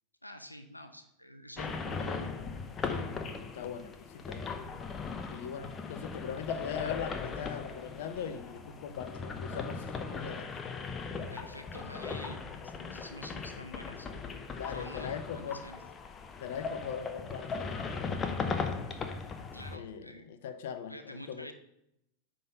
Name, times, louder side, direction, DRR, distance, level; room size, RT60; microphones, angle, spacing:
voice 1, 0.2-2.3 11.3-14.1 14.7-15.8 19.5-20.3 20.9-21.5, equal, 85° left, 7 dB, 0.6 m, -48 dB
sound 1, 1.6-19.8, left 4 dB, 20° left, 0.8 m, -38 dB
voice 2, 3.4-4.6 5.3-10.5 14.6-15.6 16.4-17.8 19.7-21.5, left 7 dB, 55° left, 10 dB, 0.7 m, -40 dB
9.3 x 3.9 x 5.4 m, 0.80 s
figure-of-eight pair, 90°, 0 cm